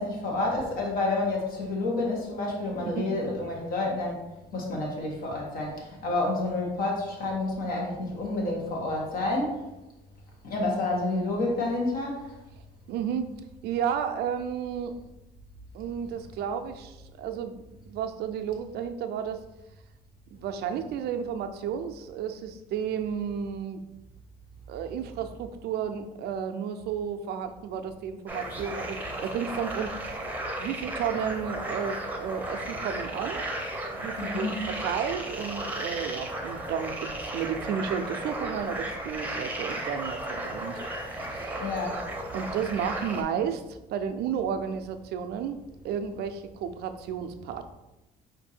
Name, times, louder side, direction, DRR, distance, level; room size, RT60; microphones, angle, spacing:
voice 1, 0.0-4.2 4.5-9.6 10.4-12.2 34.1-34.6 41.6-42.0, left 2 dB, 60° left, -1 dB, 1.5 m, -29 dB
voice 2, 12.9-13.3 13.6-15.0 15.7-19.4 20.3-23.8 24.7-30.0 30.6-33.4 33.9-40.8 41.1-41.6 42.3-45.6 45.8-47.7, right 7 dB, 75° right, 8 dB, 0.5 m, -32 dB
sound 1, 28.3-43.2, right 1 dB, 10° right, 0.8 m, -35 dB
4.5 x 2.6 x 4.3 m, 0.97 s
cardioid pair, 110°, 17 cm